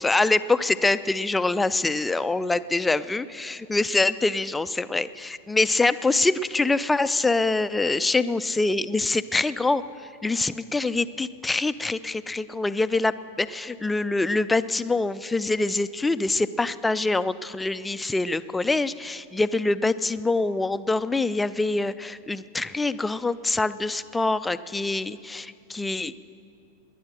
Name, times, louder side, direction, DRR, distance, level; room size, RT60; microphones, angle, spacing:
voice 1, 0.0-26.2, left 2 dB, 10° left, 14 dB, 0.4 m, -25 dB
20.0 x 10.0 x 6.6 m, 2.5 s
figure-of-eight pair, 90°, 0 cm